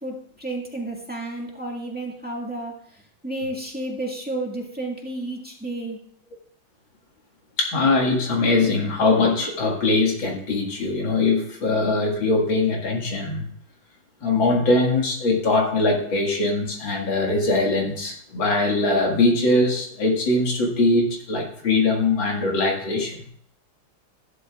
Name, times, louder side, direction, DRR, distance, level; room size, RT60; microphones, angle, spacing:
voice 1, 0.0-6.0, right 2 dB, 5° right, -2 dB, 1.8 m, -32 dB
voice 2, 7.6-13.5 14.2-23.2, left 2 dB, 75° left, 0 dB, 2.7 m, -21 dB
14.5 x 11.5 x 2.4 m, 0.62 s
omnidirectional pair, 2.2 m